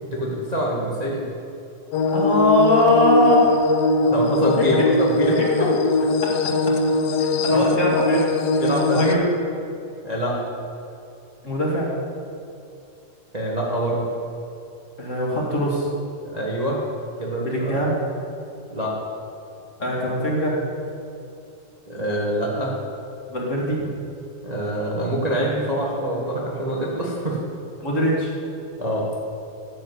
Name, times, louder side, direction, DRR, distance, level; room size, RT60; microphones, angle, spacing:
voice 1, 0.0-1.3 4.1-5.7 7.5-7.6 8.6-9.3 10.0-10.4 13.3-14.1 16.2-16.8 17.2-17.8 18.7-18.9 21.9-22.7 24.4-27.4 28.8-29.0, right 1 dB, 85° right, -4 dB, 0.3 m, -25 dB
sound 1, 1.9-9.1, left 3 dB, 80° left, 1.4 m, -21 dB
voice 2, 2.1-3.5 4.8-4.9 6.2-6.3 7.2-8.3 8.9-9.2 11.4-11.9 15.0-15.9 17.4-18.0 19.8-20.6 23.3-23.8 27.8-28.3, left 1 dB, 30° left, -3 dB, 1.8 m, -21 dB
10.5 x 7.4 x 8.1 m, 2.6 s
omnidirectional pair, 3.6 m